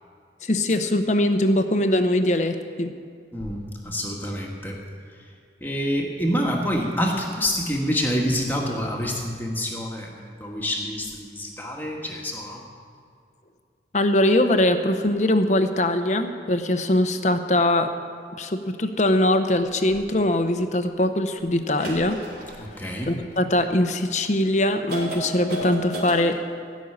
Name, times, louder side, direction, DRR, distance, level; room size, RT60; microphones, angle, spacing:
voice 1, 0.4-2.9 13.9-17.9 18.4-22.2 23.1-26.4, left 1 dB, 40° left, 8 dB, 0.9 m, -22 dB
voice 2, 3.3-4.8 5.6-12.6 22.6-23.1, equal, 10° left, -1 dB, 1.8 m, -27 dB
old pinball, 19.9-20.0 21.7-23.6 24.2-24.3 24.9-26.2, right 1 dB, 60° right, 3.8 m, -35 dB
17.0 x 6.3 x 9.9 m, 2.2 s
head